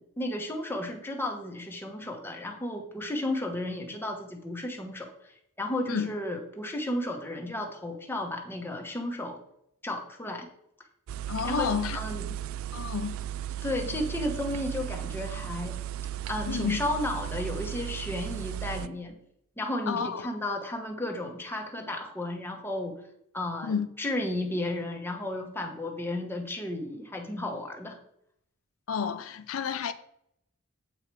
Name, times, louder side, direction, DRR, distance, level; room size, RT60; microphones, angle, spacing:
voice 1, 0.2-5.3 5.6-9.4 9.8-10.5 11.4-12.3 13.6-15.8 16.3-19.2 19.6-23.0 23.3-28.0, left 1 dB, 10° left, 1.1 m, -33 dB
sound 1, 11.1-18.9, right 11 dB, 85° right, 0.3 m, -35 dB
voice 2, 11.3-12.0 12.7-13.2 16.5-16.8 19.9-20.2 23.6-23.9 28.9-29.9, left 6 dB, 85° left, 0.5 m, -30 dB
8.0 x 4.8 x 4.7 m
head